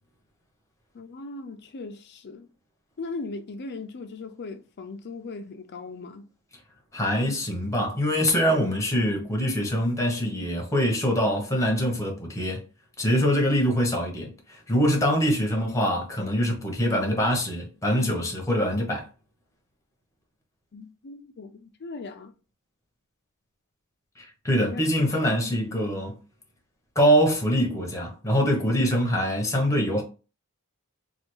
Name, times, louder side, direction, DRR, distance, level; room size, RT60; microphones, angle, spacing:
voice 1, 0.9-2.5 3.0-6.3 20.7-22.3 24.6-24.9, left 3 dB, 50° left, 0.4 m, -38 dB
voice 2, 6.9-12.6 13.0-19.1 24.2-26.2 27.0-30.0, equal, 15° left, 0.9 m, -24 dB
3.3 x 2.4 x 2.9 m
head